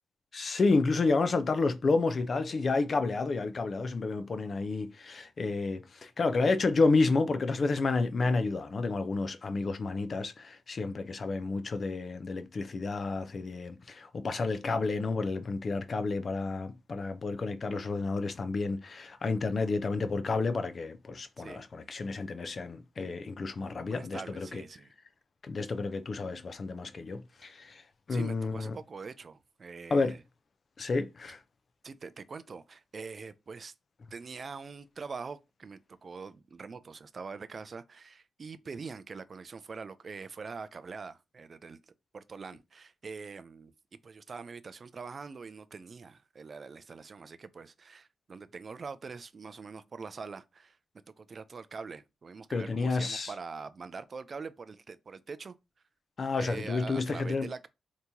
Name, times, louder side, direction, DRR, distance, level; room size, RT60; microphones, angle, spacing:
voice 1, 0.3-24.6 25.4-28.8 29.9-30.1 30.8-31.4 52.5-53.3 56.2-57.5, left 3 dB, 55° left, 0.4 m, -30 dB
voice 2, 23.9-24.9 28.1-30.2 31.8-33.7 34.1-41.8 42.1-43.7 44.0-50.8 51.1-55.5 56.4-57.7, right 4 dB, 50° right, 0.3 m, -44 dB
2.9 x 2.7 x 3.5 m
cardioid pair, 55°, 0 cm